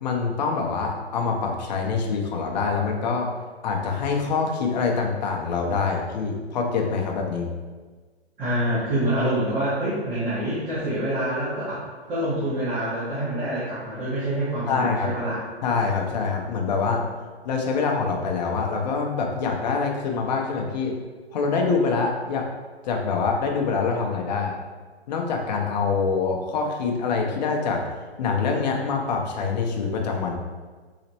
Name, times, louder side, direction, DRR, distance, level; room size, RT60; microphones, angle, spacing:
voice 1, 0.0-3.3 3.6-7.5 14.7-15.1 15.6-17.0 17.4-20.9 21.3-22.4 22.8-24.5 25.1-27.8 28.2-30.3, left 5 dB, 40° left, 1 dB, 0.6 m, -25 dB
voice 2, 8.4-11.8 12.1-15.4, right 1 dB, 20° right, -11 dB, 1.0 m, -26 dB
4.1 x 2.8 x 2.9 m, 1.4 s
figure-of-eight pair, 130°, 33 cm